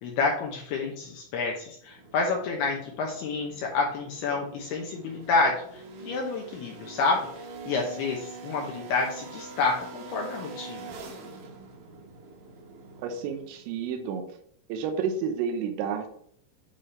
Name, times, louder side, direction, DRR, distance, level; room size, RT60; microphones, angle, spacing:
voice 1, 0.0-10.9, left 4 dB, 75° left, 0 dB, 2.4 m, -29 dB
sound 1, 1.8-13.7, right 3 dB, 65° right, 3.4 m, -44 dB
voice 2, 13.0-14.2 14.7-16.1, right 6 dB, 85° right, 4 dB, 3.5 m, -30 dB
9.5 x 3.5 x 4.3 m, 0.64 s
omnidirectional pair, 5.9 m